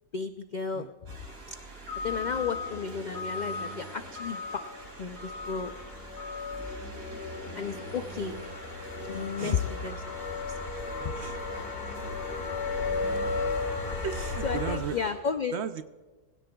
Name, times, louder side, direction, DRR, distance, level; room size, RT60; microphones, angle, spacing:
voice 1, 0.1-0.9 2.0-4.7 5.0-5.7 7.5-8.4 9.1-11.2 13.9-14.0 14.4-15.6, left 6 dB, 80° left, 9 dB, 0.4 m, -33 dB
sound 1, 1.1-15.1, left 2 dB, 80° right, 3.2 m, -41 dB
sound 2, 4.2-14.8, left 3 dB, 45° left, 1.6 m, -35 dB
voice 2, 10.7-11.4 14.0-15.0 15.5-15.8, right 8 dB, 65° right, 11 dB, 0.8 m, -36 dB
21.5 x 16.5 x 2.3 m, 1.3 s
omnidirectional pair, 1.4 m